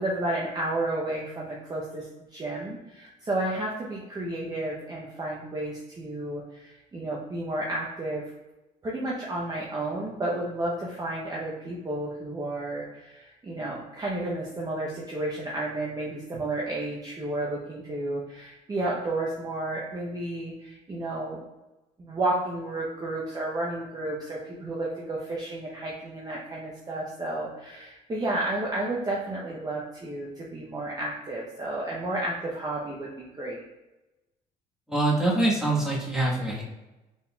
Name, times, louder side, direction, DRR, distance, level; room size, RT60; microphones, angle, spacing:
voice 1, 0.0-8.3 8.8-21.4 22.0-33.6, right 2 dB, 25° right, -4 dB, 0.7 m, -32 dB
voice 2, 34.9-36.6, right 2 dB, 5° right, -5 dB, 1.3 m, -24 dB
4.0 x 3.8 x 2.3 m, 1.0 s
cardioid pair, 110°, 17 cm